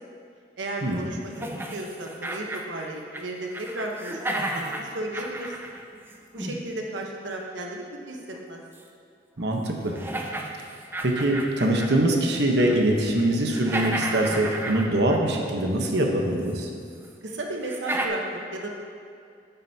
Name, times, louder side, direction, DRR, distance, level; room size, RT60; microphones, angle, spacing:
voice 1, 0.6-4.2 4.5-5.5 6.3-8.6 17.2-18.7, right 1 dB, 90° right, 0 dB, 1.1 m, -34 dB
sound 1, 1.3-3.3 3.5-6.6 8.7-8.8 9.4-9.5 9.9-12.0 12.4-12.9 13.2-15.4 16.5-16.6 17.0-17.1 17.6-18.1, right 1 dB, 10° right, 0.5 m, -33 dB
voice 2, 9.4-9.9 11.0-16.7, right 1 dB, 65° right, 1 dB, 1.0 m, -23 dB
9.9 x 9.2 x 2.8 m, 2.3 s
head